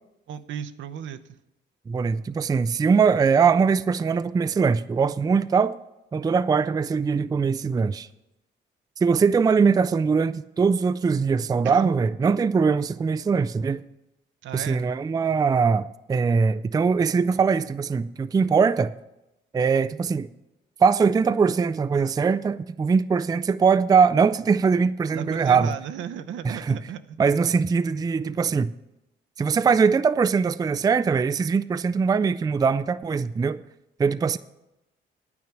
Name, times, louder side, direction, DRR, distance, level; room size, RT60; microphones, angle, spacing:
voice 1, 0.3-1.4 11.6-11.9 14.4-14.8 25.1-27.2, right 8 dB, 75° right, 0.7 m, -35 dB
voice 2, 1.9-5.8 6.1-8.1 9.0-13.8 14.5-18.9 19.5-20.3 20.8-25.7 26.4-26.8 27.2-28.7 29.4-33.6 34.0-34.4, right 5 dB, 20° right, 0.3 m, -21 dB
9.5 x 9.0 x 5.9 m
cardioid pair, 90°, 20 cm